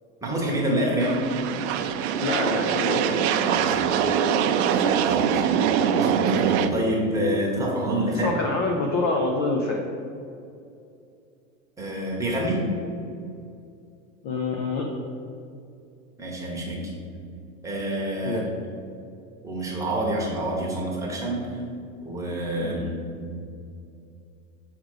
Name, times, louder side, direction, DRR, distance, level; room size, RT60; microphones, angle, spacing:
voice 1, 0.2-1.2 3.4-3.8 4.6-5.4 6.0-8.3 11.8-12.6 16.2-16.8 17.6-18.4 19.4-21.4 22.0-22.8 23.1-23.2, right 1 dB, 10° right, -3 dB, 1.1 m, -27 dB
sound 1, 1.0-6.7, right 8 dB, 55° right, 0.5 m, -23 dB
voice 2, 2.2-3.9 8.1-9.8 14.2-15.0 18.3-18.5 22.6-22.9, left 3 dB, 25° left, 1 dB, 0.3 m, -27 dB
5.1 x 5.0 x 6.4 m, 2.5 s
supercardioid pair, 155°, 40 cm